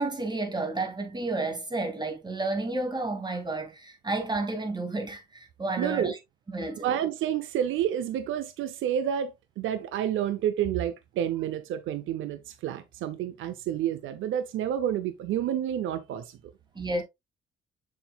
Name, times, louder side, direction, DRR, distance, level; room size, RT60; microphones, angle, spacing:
voice 1, 0.0-6.2 6.5-7.0 16.7-17.0, right 2 dB, 20° right, 2.3 m, -31 dB
voice 2, 5.8-6.1 6.8-16.4, right 10 dB, 80° right, 0.7 m, -29 dB
7.1 x 6.0 x 2.3 m
cardioid pair, 90°, 20 cm